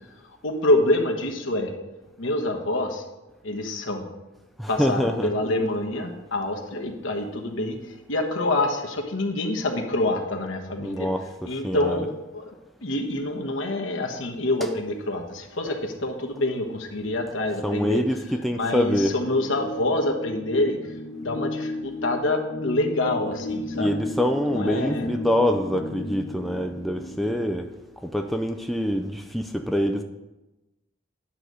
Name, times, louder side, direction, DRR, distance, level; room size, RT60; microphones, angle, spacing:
voice 1, 0.2-1.7 2.2-3.0 3.4-4.1 4.7-11.1 11.4-12.5 12.8-18.0 18.5-20.9 21.2-23.9 24.5-25.1, left 2 dB, 80° left, 2 dB, 1.2 m, -26 dB
voice 2, 4.6-5.3 10.8-12.0 17.6-19.1 23.7-27.7 28.0-30.0, equal, ahead, 4 dB, 0.4 m, -25 dB
sound 1, 19.0-27.6, left 1 dB, 40° left, 1.1 m, -34 dB
10.0 x 4.0 x 6.3 m, 1.0 s
head